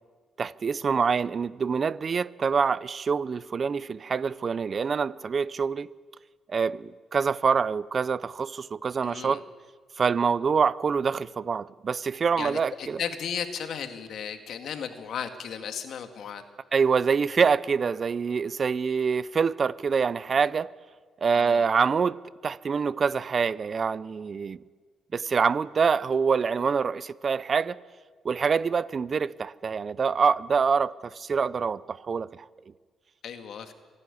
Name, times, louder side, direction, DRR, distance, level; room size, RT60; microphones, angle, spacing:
voice 1, 0.4-5.9 6.5-9.4 10.0-13.0 16.7-20.7 21.2-22.2 22.4-24.6 25.1-27.8 28.2-32.4, right 5 dB, 45° right, 0.5 m, -25 dB
voice 2, 9.0-9.4 12.4-16.4 21.3-21.7 33.2-33.7, left 7 dB, 70° left, 2.0 m, -35 dB
25.0 x 11.0 x 9.9 m
cardioid pair, 90°, 0 cm